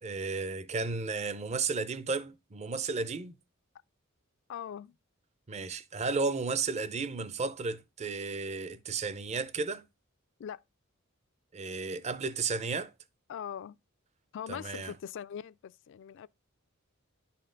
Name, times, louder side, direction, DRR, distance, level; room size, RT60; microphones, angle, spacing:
voice 1, 0.0-3.3 5.5-9.8 11.5-12.9 14.5-14.9, right 4 dB, 30° right, 0.5 m, -33 dB
voice 2, 4.5-5.0 10.4-10.6 13.3-13.8 14.3-16.3, left 8 dB, 60° left, 0.3 m, -41 dB
10.5 x 4.3 x 3.8 m
head